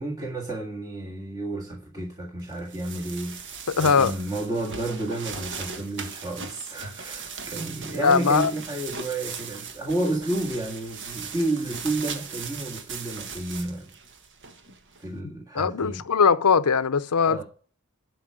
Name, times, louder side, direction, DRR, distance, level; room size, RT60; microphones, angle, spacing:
voice 1, 0.0-13.9 15.0-16.0 17.2-17.4, right 2 dB, 15° right, 1.8 m, -31 dB
sound 1, 2.5-15.0, right 5 dB, 55° right, 1.5 m, -38 dB
voice 2, 3.7-4.1 8.0-8.5 15.6-17.4, left 5 dB, 80° left, 0.7 m, -20 dB
11.5 x 4.7 x 6.2 m
head